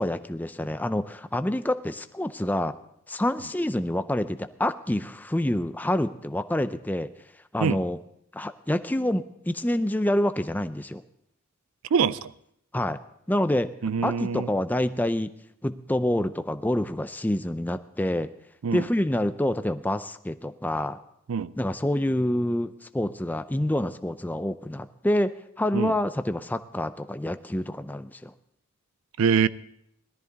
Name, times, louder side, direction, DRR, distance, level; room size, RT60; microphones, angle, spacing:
voice 1, 0.0-2.7 3.1-7.1 7.5-8.0 8.3-11.0 12.7-13.0 13.3-13.7 14.0-15.3 15.6-18.3 18.7-21.0 21.6-25.3 25.6-28.3, left 1 dB, 10° left, 11 dB, 0.5 m, -27 dB
voice 2, 11.9-12.3 13.8-14.5 18.6-18.8 21.3-21.5 25.7-25.9 29.2-29.5, right 6 dB, 80° right, 17 dB, 0.4 m, -24 dB
18.5 x 13.0 x 4.0 m, 0.73 s
head